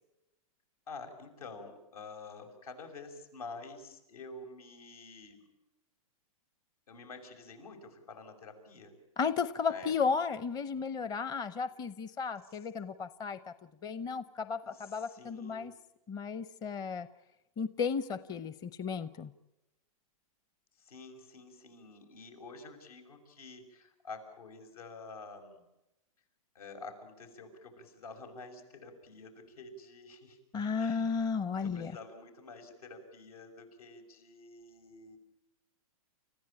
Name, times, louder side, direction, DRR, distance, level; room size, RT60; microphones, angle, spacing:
voice 1, 0.9-5.5 6.9-8.9 9.7-9.9 11.5-11.7 14.6-15.7 20.8-25.6 26.5-30.4 30.7-31.3 31.6-35.2, left 3 dB, 80° left, 5 dB, 6.1 m, -49 dB
voice 2, 9.2-13.5 13.8-15.7 16.1-17.1 17.6-19.3 30.5-32.0, left 5 dB, 20° left, 14 dB, 0.7 m, -34 dB
30.0 x 15.0 x 8.9 m, 0.94 s
hypercardioid pair, 130°, 19 cm